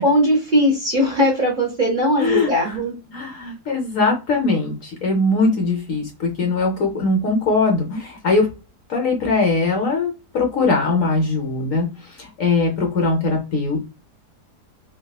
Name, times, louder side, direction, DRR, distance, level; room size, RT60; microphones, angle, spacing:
voice 1, 0.0-2.9, equal, 40° right, -1 dB, 0.8 m, -19 dB
voice 2, 2.2-2.8 3.1-8.5 8.9-11.9 12.2-13.8, left 3 dB, 60° left, 2 dB, 0.9 m, -21 dB
3.4 x 2.3 x 2.3 m, 0.30 s
omnidirectional pair, 1.8 m